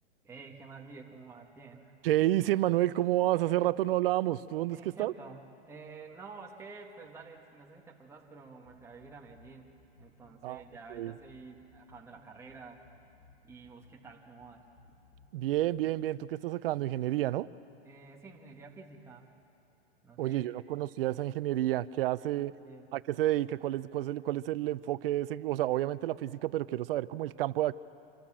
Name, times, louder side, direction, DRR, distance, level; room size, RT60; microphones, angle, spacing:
voice 1, 0.2-2.0 4.7-9.7 10.0-12.8 13.5-14.6 17.8-19.3 20.0-20.5 22.4-22.9, right 4 dB, 10° right, -1 dB, 1.8 m, -50 dB
voice 2, 2.0-5.1 10.4-10.6 10.9-11.1 15.3-17.5 20.2-22.5 22.9-27.7, right 14 dB, 60° right, 16 dB, 0.8 m, -30 dB
sound 1, 8.6-16.2, left 2 dB, 10° left, 5.3 m, -61 dB
27.0 x 24.5 x 7.6 m, 2.7 s
hypercardioid pair, 140°, 33 cm